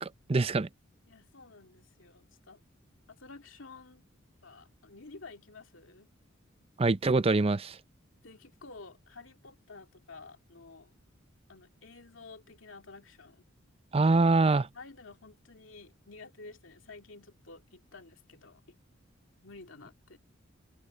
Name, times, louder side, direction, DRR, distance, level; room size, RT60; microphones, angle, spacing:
voice 1, 0.0-0.7 6.8-7.8 13.9-14.7, right 3 dB, 30° right, 0.5 m, -24 dB
voice 2, 1.1-2.6 3.1-4.0 4.4-6.1 8.2-10.9 11.5-13.4 14.7-18.7 19.4-20.2, left 3 dB, 75° left, 2.5 m, -51 dB
head